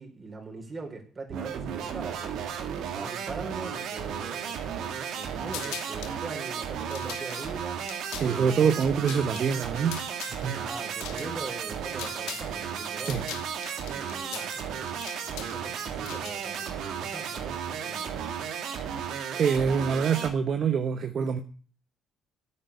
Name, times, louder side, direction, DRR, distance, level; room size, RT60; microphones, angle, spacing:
voice 1, 0.0-9.0 10.5-13.2 13.8-14.9 15.2-18.4, right 3 dB, 30° right, 2 dB, 4.5 m, -42 dB
sound 1, 1.3-20.3, right 7 dB, 70° right, 1.9 m, -34 dB
sound 2, 5.5-6.2 6.7-12.5 12.8-16.6, left 12 dB, 80° left, 1.0 m, -42 dB
voice 2, 8.1-10.0 10.2-10.6 13.0-13.2 19.3-21.4, right 6 dB, 55° right, 8 dB, 1.0 m, -25 dB
8.9 x 8.8 x 8.2 m, 0.42 s
hypercardioid pair, 60°, 0 cm